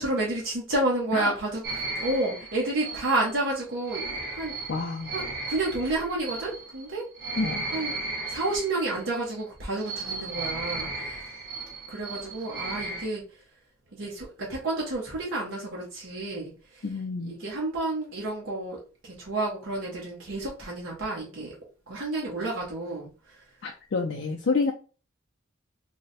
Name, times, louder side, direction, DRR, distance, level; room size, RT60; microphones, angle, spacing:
voice 1, 0.0-1.6 2.0-4.0 4.3-4.5 5.1-7.1 7.7-8.0 8.3-11.2 11.9-13.2 13.9-16.8 17.2-21.5 21.9-23.1, right 2 dB, 70° right, -3 dB, 0.9 m, -30 dB
sound 1, 1.6-9.2 9.8-13.1, right 3 dB, 55° right, 1.2 m, -35 dB
voice 2, 4.7-5.1 7.4-7.6 16.8-17.4 23.6-24.7, left 4 dB, 60° left, 0 dB, 0.5 m, -28 dB
3.3 x 2.1 x 4.0 m, 0.37 s
head